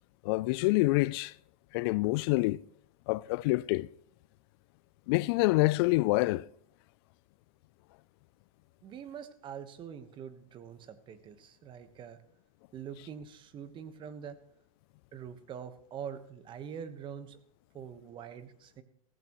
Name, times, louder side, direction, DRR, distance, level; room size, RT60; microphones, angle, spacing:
voice 1, 0.2-1.3 1.7-2.6 3.1-3.9 5.1-6.5, left 21 dB, 45° left, 0.4 m, -26 dB
voice 2, 8.8-12.2 12.7-14.4 15.1-17.4 17.7-18.8, right 8 dB, 25° right, 1.3 m, -44 dB
16.5 x 14.5 x 3.1 m
hypercardioid pair, 125°, 18 cm